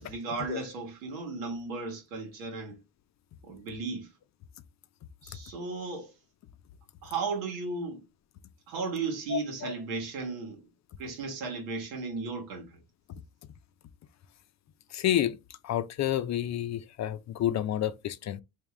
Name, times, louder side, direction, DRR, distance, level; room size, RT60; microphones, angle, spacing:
voice 1, 0.0-2.8 3.4-4.1 5.2-6.1 7.0-8.0 8.7-10.6 11.0-12.8, right 4 dB, 90° right, 1.5 m, -35 dB
voice 2, 9.3-9.7 14.9-15.4 15.6-18.4, left 11 dB, 45° left, 0.5 m, -29 dB
3.6 x 2.8 x 3.1 m
supercardioid pair, 70°, 39 cm